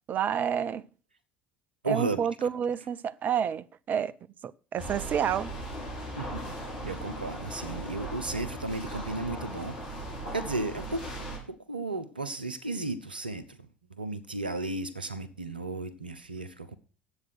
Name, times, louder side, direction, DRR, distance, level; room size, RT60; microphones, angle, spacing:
voice 1, 0.1-0.9 1.8-4.1 4.4-5.5, right 8 dB, 35° right, 0.5 m, -29 dB
voice 2, 1.8-2.2 6.2-6.4 6.8-9.8 10.3-11.1 11.5-16.8, right 2 dB, 85° right, 0.8 m, -34 dB
sound 1, 4.8-11.4, right 1 dB, 70° left, 5.6 m, -38 dB
9.7 x 7.9 x 6.3 m
figure-of-eight pair, 65°, 5 cm